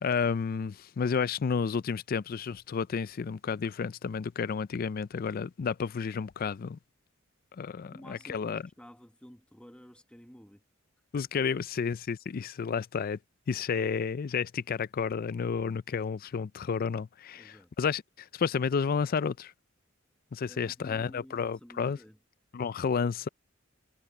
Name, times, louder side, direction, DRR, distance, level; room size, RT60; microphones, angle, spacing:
voice 1, 0.0-6.8 7.6-8.6 11.1-13.2 13.5-19.5 20.3-22.0 22.5-23.3, left 6 dB, 45° left, 0.4 m, -31 dB
voice 2, 7.9-10.6 11.2-11.3 17.3-17.7 20.5-22.2, equal, 5° left, 1.4 m, -52 dB
head